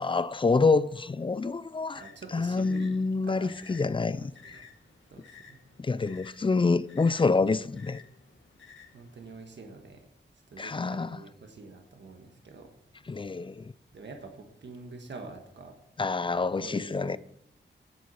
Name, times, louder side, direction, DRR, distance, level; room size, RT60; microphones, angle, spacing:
voice 1, 0.0-2.0 2.3-4.3 5.8-8.0 10.6-11.1 13.1-13.7 16.0-17.2, left 4 dB, 25° left, 0.4 m, -27 dB
sound 1, 1.9-9.4, left 5 dB, 80° left, 2.1 m, -55 dB
voice 2, 1.9-4.6 5.1-5.6 8.9-10.1 10.5-12.7 13.9-15.8 16.6-17.2, right 3 dB, 65° right, 1.4 m, -46 dB
10.5 x 7.8 x 5.6 m
wide cardioid pair, 115°, 20 cm